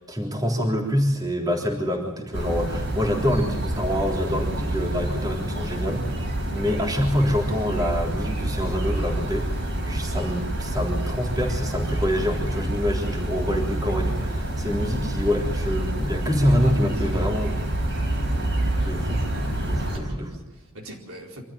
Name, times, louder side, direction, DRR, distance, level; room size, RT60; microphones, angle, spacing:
voice 1, 0.1-6.0 6.5-17.5 18.8-19.2 19.6-20.4, equal, 20° right, 0 dB, 3.6 m, -26 dB
sound 1, 2.3-20.0, right 1 dB, 60° right, 5.4 m, -27 dB
voice 2, 16.4-17.7 19.7-21.4, right 1 dB, 80° right, 0 dB, 4.5 m, -40 dB
25.0 x 13.5 x 8.9 m, 1.0 s
head